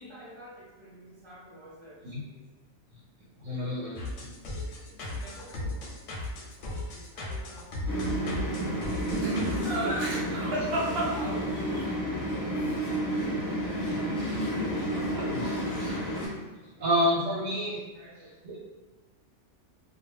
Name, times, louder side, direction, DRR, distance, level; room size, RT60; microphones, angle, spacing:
voice 1, 0.0-2.4 3.4-4.1 4.5-6.1 6.4-9.0 10.8-14.4 14.7-15.5 16.7-17.2 17.9-18.3, right 1 dB, 25° right, -9 dB, 1.2 m, -48 dB
voice 2, 3.4-4.3 10.3-10.9 15.3-15.5 16.8-17.8, equal, 85° right, -7 dB, 1.3 m, -29 dB
sound 1, 4.0-9.8, left 2 dB, 85° left, 0.9 m, -36 dB
sound 2, 7.9-16.3, equal, 25° left, 0.4 m, -31 dB
Laughter, 9.1-11.8 14.6-15.4 15.7-16.2, right 1 dB, 60° right, 0.8 m, -31 dB
2.5 x 2.0 x 3.2 m, 1.3 s
omnidirectional pair, 1.2 m